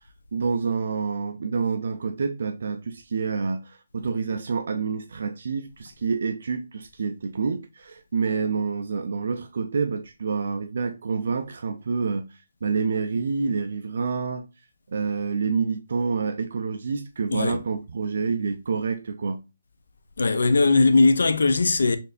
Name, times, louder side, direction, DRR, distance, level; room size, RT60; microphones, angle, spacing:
voice 1, 0.3-14.5 14.9-19.4, right 5 dB, 50° right, 0.4 m, -28 dB
voice 2, 17.3-17.6 20.2-22.0, left 3 dB, 75° left, 0.5 m, -19 dB
4.2 x 3.2 x 2.4 m
hypercardioid pair, 180°, 0 cm